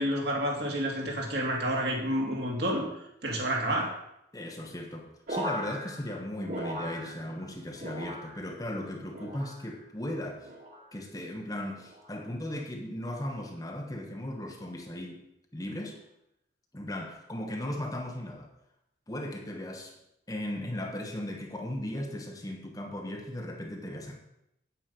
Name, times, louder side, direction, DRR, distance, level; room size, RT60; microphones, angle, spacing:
voice 1, 0.0-2.8 3.2-3.9, equal, 65° right, -1 dB, 2.7 m, -29 dB
voice 2, 4.3-10.5 10.9-15.2 15.5-16.0 16.7-18.5 19.1-20.0 20.3-24.2, left 1 dB, 20° left, 3 dB, 1.1 m, -37 dB
sound 1, 5.3-7.5 7.8-8.6 9.1-9.8 10.4-10.9 11.8-12.2 13.1-13.4, equal, 45° right, 2.3 m, -39 dB
8.9 x 8.8 x 5.3 m, 0.81 s
head